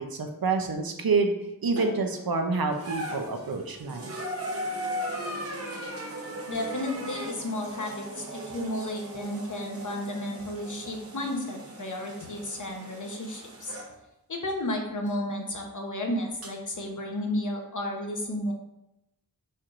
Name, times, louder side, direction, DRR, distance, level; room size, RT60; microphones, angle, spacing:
voice 1, 0.0-1.3 1.6-4.1, right 4 dB, 70° right, 4 dB, 0.7 m, -27 dB
sound 1, 1.8-2.2 2.7-13.9 15.1-15.2 16.4-16.5, right 1 dB, 40° right, 0.9 m, -38 dB
voice 2, 6.5-13.8 14.3-18.5, left 1 dB, 55° left, 1 dB, 0.9 m, -33 dB
4.5 x 4.3 x 2.5 m, 0.88 s
wide cardioid pair, 60°, 37 cm